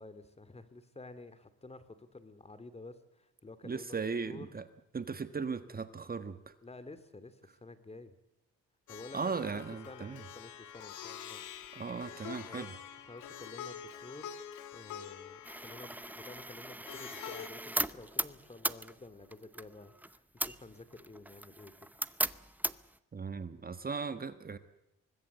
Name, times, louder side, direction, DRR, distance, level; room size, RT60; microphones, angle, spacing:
voice 1, 0.0-4.0 4.3-4.5 6.6-8.1 8.9-11.4 12.3-12.7 13.1-14.4 14.7-21.9, left 2 dB, 20° left, 13 dB, 2.5 m, -51 dB
voice 2, 3.6-4.6 4.9-6.5 9.1-10.2 11.7-12.7 23.1-24.6, right 5 dB, 30° right, 11 dB, 1.4 m, -37 dB
Plucked string instrument, 8.9-17.5, left 9 dB, 80° left, 2.4 m, -47 dB
sound 1, 15.4-23.0, right 1 dB, 5° right, 0.8 m, -38 dB
24.5 x 20.5 x 8.1 m, 0.88 s
cardioid pair, 90°, 30 cm